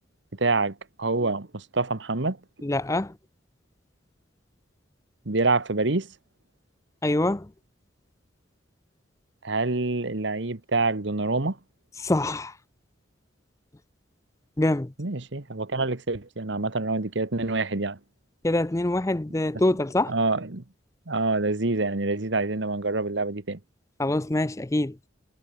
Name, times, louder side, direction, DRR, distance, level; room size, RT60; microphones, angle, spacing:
voice 1, 0.4-2.4 5.2-6.1 9.4-11.6 15.0-18.0 20.1-20.6 21.1-23.6, right 3 dB, 70° right, 1.5 m, -26 dB
voice 2, 2.6-3.1 7.0-7.5 12.0-12.5 14.6-14.9 18.4-20.1 24.0-25.0, left 1 dB, 15° left, 0.5 m, -24 dB
head